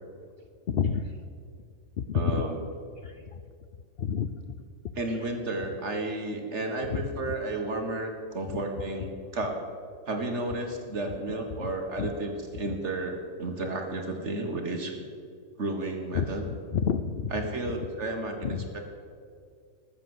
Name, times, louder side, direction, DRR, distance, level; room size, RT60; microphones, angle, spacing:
voice 1, 0.7-1.2 2.0-2.4 3.0-3.4 4.0-4.4 5.1-5.3 6.9-7.0 8.5-8.6 11.5-11.7 12.0-12.1 12.7-12.8 16.1-17.9 18.4-18.7, left 7 dB, 85° left, 9 dB, 0.5 m, -30 dB
voice 2, 2.1-2.6 5.0-9.6 10.1-15.0 15.6-16.4 17.3-18.8, right 2 dB, 45° right, 4 dB, 1.8 m, -32 dB
19.0 x 7.4 x 7.9 m, 2.2 s
omnidirectional pair, 1.8 m